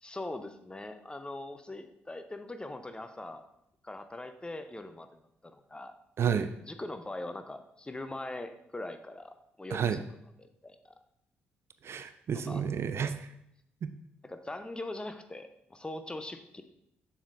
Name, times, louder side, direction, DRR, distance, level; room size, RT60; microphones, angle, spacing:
voice 1, 0.0-3.4 3.8-5.9 6.6-10.0 10.4-11.0 12.3-12.6 14.2-16.6, left 2 dB, 15° left, 8 dB, 0.7 m, -41 dB
voice 2, 6.2-6.5 9.7-10.0 11.8-13.2 13.8-13.9, right 7 dB, 50° right, 11 dB, 0.4 m, -30 dB
7.1 x 7.1 x 2.5 m, 0.77 s
hypercardioid pair, 40°, 6 cm